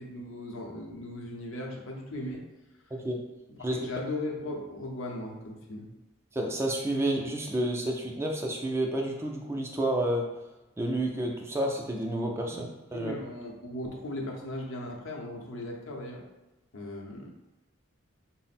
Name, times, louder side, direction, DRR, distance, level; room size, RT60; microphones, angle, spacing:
voice 1, 0.0-2.4 3.6-5.9 12.5-16.2 16.7-17.3, left 1 dB, 70° left, 0 dB, 0.7 m, -38 dB
voice 2, 6.3-10.3 10.8-13.1, right 1 dB, 15° right, 1 dB, 0.3 m, -30 dB
4.0 x 2.0 x 4.1 m, 1.0 s
head